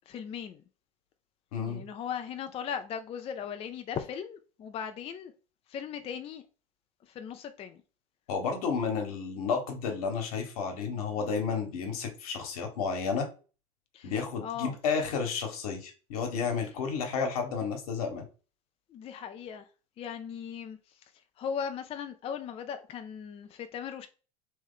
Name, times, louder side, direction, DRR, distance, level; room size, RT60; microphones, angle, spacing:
voice 1, 0.1-0.6 1.7-5.3 5.7-6.4 7.1-7.8 13.9-14.1 14.4-14.8 18.9-19.7 20.0-21.1 21.4-24.1, left 7 dB, 30° left, 0.4 m, -38 dB
voice 2, 1.5-1.8 8.3-13.3 14.0-18.3, left 5 dB, 80° left, 1.3 m, -31 dB
3.2 x 3.0 x 3.7 m
hypercardioid pair, 95°, 19 cm